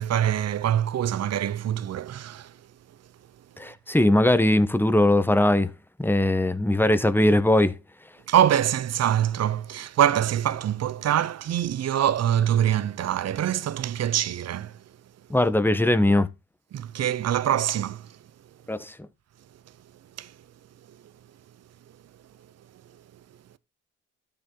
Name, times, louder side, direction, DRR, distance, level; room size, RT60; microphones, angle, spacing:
voice 1, 0.0-2.5 8.3-14.8 16.7-18.2 20.2-20.3 20.9-21.0, right 10 dB, 55° right, 0.9 m, -24 dB
voice 2, 3.6-5.7 6.0-7.7 15.3-16.3 18.7-18.9, left 1 dB, 5° left, 1.2 m, -20 dB
12.0 x 7.1 x 3.9 m
cardioid pair, 90°, 30 cm